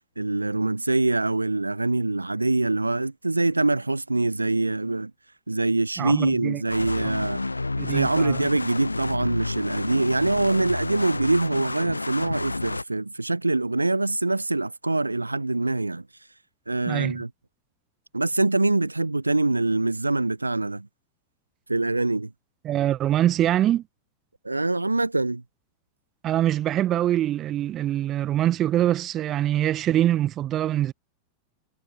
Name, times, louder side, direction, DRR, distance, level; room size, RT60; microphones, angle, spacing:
voice 1, 0.2-5.1 5.5-7.4 7.9-16.0 16.7-17.3 18.1-20.9 21.7-22.3 24.4-25.4, right 2 dB, 85° right, 0.4 m, -24 dB
voice 2, 6.0-6.6 7.8-8.4 16.8-17.2 22.6-23.8 26.2-30.9, right 12 dB, 30° right, 1.6 m, -24 dB
sound 1, 6.7-12.8, left 2 dB, 80° left, 0.4 m, -30 dB
figure-of-eight pair, 90°, 0 cm